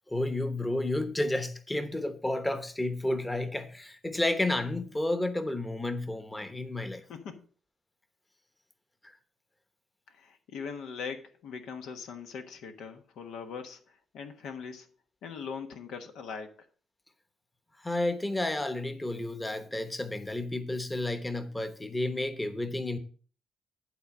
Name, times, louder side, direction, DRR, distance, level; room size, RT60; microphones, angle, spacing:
voice 1, 0.1-7.0 17.8-23.0, left 1 dB, 15° left, 1.0 m, -31 dB
voice 2, 7.1-7.4 10.1-14.9 15.2-16.7, left 6 dB, 80° left, 1.2 m, -41 dB
11.5 x 4.0 x 6.2 m
cardioid pair, 90°, 0 cm